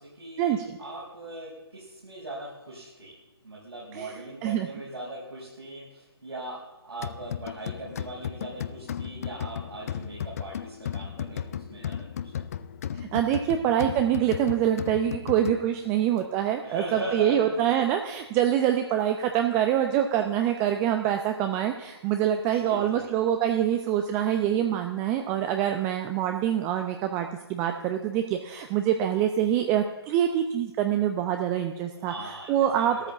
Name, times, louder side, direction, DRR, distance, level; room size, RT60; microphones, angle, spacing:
voice 1, 0.0-3.1 3.4-6.6 6.8-12.3 16.6-17.6 22.5-23.3 31.8-33.1, right 1 dB, 75° right, -5 dB, 5.2 m, -40 dB
sound 1, 7.0-15.9, left 9 dB, 35° left, 0.6 m, -35 dB
voice 2, 12.9-32.1 32.5-33.1, right 10 dB, 15° right, 6 dB, 0.6 m, -25 dB
14.0 x 13.0 x 7.0 m, 1.1 s
figure-of-eight pair, 140°, 13 cm